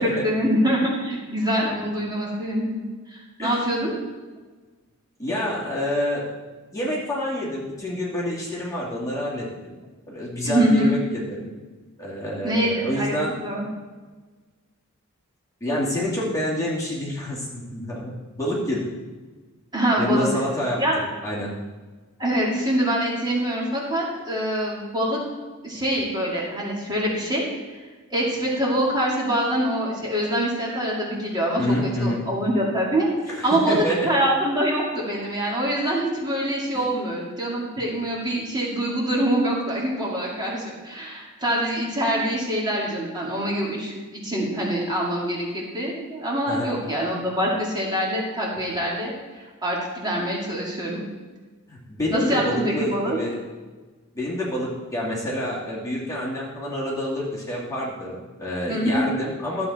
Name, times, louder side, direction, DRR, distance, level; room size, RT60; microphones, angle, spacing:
voice 1, 0.0-2.8 3.1-4.0 10.4-10.9 12.4-13.1 13.4-13.7 19.7-20.3 20.8-21.0 22.2-25.2 25.6-27.4 27.7-27.8 28.1-51.0 52.1-53.2 58.7-59.0, right 1 dB, 20° right, -5 dB, 2.2 m, -25 dB
voice 2, 5.2-6.3 6.7-9.8 10.1-11.5 12.0-13.4 15.6-18.1 18.4-18.9 20.0-21.5 31.6-32.2 33.3-34.1 46.5-46.7 51.7-53.4 54.1-59.7, left 1 dB, 15° left, -6 dB, 2.3 m, -27 dB
13.0 x 7.8 x 4.2 m, 1.3 s
head